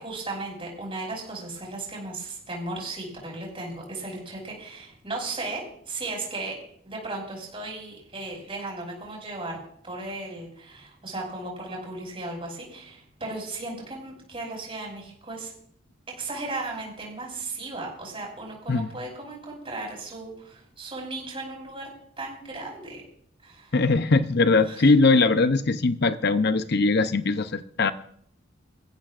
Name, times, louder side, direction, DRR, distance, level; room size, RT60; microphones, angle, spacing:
voice 1, 0.0-6.6 6.8-15.5 16.1-21.9 22.2-23.0 23.4-23.7 24.6-24.9, right 2 dB, 30° right, -1 dB, 6.0 m, -36 dB
voice 2, 23.7-27.9, left 3 dB, 55° left, 11 dB, 0.7 m, -21 dB
26.0 x 15.0 x 2.5 m, 0.65 s
head